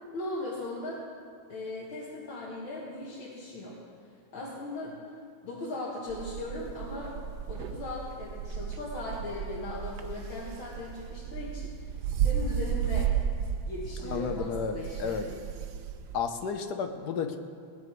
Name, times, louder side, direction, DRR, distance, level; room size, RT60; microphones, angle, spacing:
voice 1, 0.1-1.0 1.5-3.8 4.3-5.0 5.4-7.1 7.5-13.1 13.7-15.4, left 2 dB, 80° left, -6 dB, 2.6 m, -38 dB
sound 1, 6.1-16.1, right 8 dB, 65° right, 1.2 m, -34 dB
voice 2, 14.0-15.3 16.1-17.4, left 6 dB, 60° left, 6 dB, 1.4 m, -32 dB
18.5 x 9.5 x 4.7 m, 2.2 s
omnidirectional pair, 2.1 m